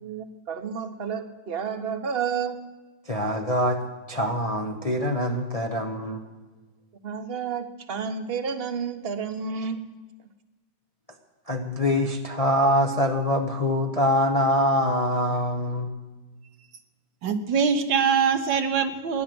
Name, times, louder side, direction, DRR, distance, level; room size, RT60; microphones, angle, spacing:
voice 1, 0.0-2.6 7.0-9.8, right 6 dB, 40° right, 9 dB, 1.1 m, -31 dB
voice 2, 3.1-3.8 4.1-6.2 11.5-15.9, equal, 30° left, 3 dB, 0.7 m, -24 dB
voice 3, 17.2-19.2, right 6 dB, 75° right, 7 dB, 1.8 m, -23 dB
16.0 x 10.5 x 7.8 m, 1.3 s
omnidirectional pair, 2.0 m